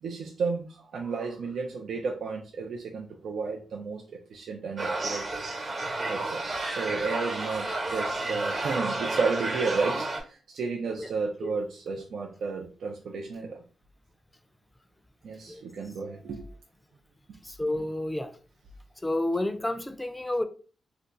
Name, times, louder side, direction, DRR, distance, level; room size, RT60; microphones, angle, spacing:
voice 1, 0.0-5.2 6.1-13.6 15.2-16.5, right 4 dB, 75° right, 0.4 m, -32 dB
sound 1, 4.8-10.2, right 2 dB, 55° right, 1.0 m, -31 dB
voice 2, 17.4-18.4 19.0-20.4, left 1 dB, 15° left, 0.4 m, -30 dB
2.5 x 2.2 x 3.8 m
cardioid pair, 65°, 0 cm